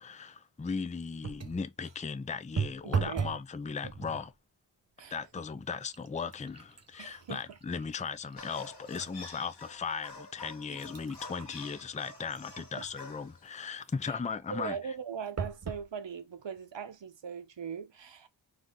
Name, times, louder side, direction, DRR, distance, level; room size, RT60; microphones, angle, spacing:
voice 1, 0.0-4.3 5.1-14.8, left 5 dB, 15° left, 0.4 m, -37 dB
sound 1, 1.2-1.7 2.6-3.5 3.8-4.3 5.0-5.2 5.6-9.2 9.6-9.7 10.4-13.1 15.4-15.9 16.6-16.7 16.9-17.0, right 6 dB, 35° right, 0.6 m, -38 dB
voice 2, 2.8-3.3 5.0-5.2 7.0-7.4 10.7-10.8 12.8-12.9 14.1-14.2 14.5-18.3, right 7 dB, 60° right, 0.9 m, -40 dB
sound 2, 8.4-13.5, left 3 dB, 55° left, 1.6 m, -48 dB
4.4 x 2.7 x 3.6 m
wide cardioid pair, 70°, 49 cm